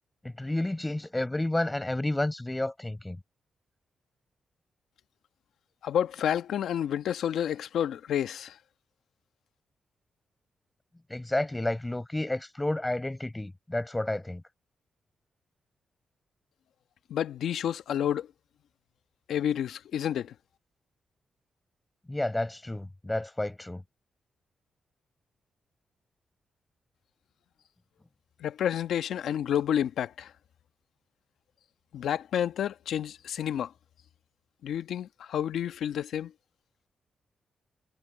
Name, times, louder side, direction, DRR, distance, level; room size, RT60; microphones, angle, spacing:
voice 1, 0.2-3.2 11.1-14.4 22.1-23.8, left 1 dB, 15° left, 4.8 m, -31 dB
voice 2, 5.8-8.6 17.1-18.3 19.3-20.3 28.4-30.3 31.9-33.7 34.6-36.3, left 9 dB, 80° left, 1.2 m, -30 dB
cardioid pair, 60°, 0 cm